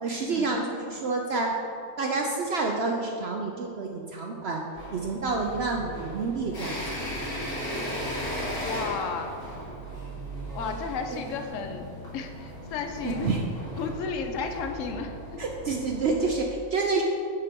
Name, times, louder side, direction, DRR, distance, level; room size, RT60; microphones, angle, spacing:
voice 1, 0.0-1.6 2.0-4.6 4.9-7.1 10.6-10.7 11.1-11.2 13.0-13.4 15.4-17.0, right 3 dB, 60° right, 1 dB, 0.8 m, -28 dB
sound 1, 4.8-16.3, equal, 85° left, 2.5 m, -37 dB
Keyboard (musical), 5.3-12.2, right 2 dB, 15° right, 0.9 m, -48 dB
voice 2, 8.6-9.4 10.5-11.9 12.1-13.3 13.8-15.4, left 5 dB, 65° left, 5 dB, 1.0 m, -33 dB
9.7 x 4.4 x 5.1 m, 2.4 s
omnidirectional pair, 1.5 m